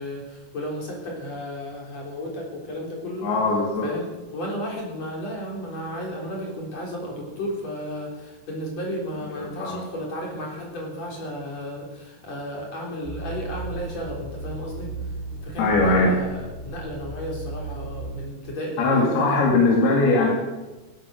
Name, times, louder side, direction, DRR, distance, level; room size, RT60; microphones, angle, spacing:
voice 1, 0.0-3.3 3.8-15.1 15.4-19.5, equal, 40° left, -1 dB, 4.7 m, -33 dB
voice 2, 3.2-3.9 9.4-9.8 15.6-16.2 18.8-20.3, left 3 dB, 65° left, -1 dB, 4.2 m, -20 dB
sound 1, 13.0-18.1, right 2 dB, 10° left, 6.5 m, -35 dB
17.0 x 12.5 x 6.5 m, 1.1 s
omnidirectional pair, 4.9 m